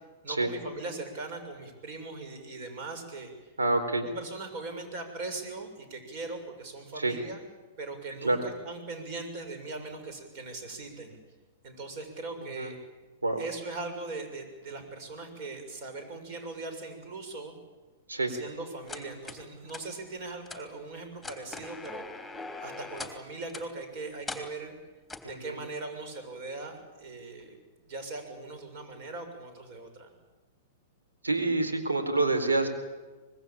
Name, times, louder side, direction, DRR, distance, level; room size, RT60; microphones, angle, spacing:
voice 1, 0.2-3.3 4.0-7.4 7.8-11.2 11.6-12.8 13.4-17.5 18.3-22.3 22.6-24.8 25.2-27.6 27.9-30.1, right 3 dB, 50° right, 7 dB, 7.0 m, -40 dB
voice 2, 3.6-4.0 7.0-7.1 8.2-8.4 12.4-12.7 13.2-13.4 18.1-18.3 25.2-25.6 31.2-32.7, right 2 dB, 90° right, 6 dB, 4.3 m, -27 dB
sound 1, 18.9-19.4 19.7-19.8 20.5-20.6 21.2-23.2 23.5-23.7 24.3-24.5 25.1-25.3, left 3 dB, ahead, 3.3 m, -40 dB
25.0 x 21.0 x 8.9 m, 1.2 s
hypercardioid pair, 105°, 0 cm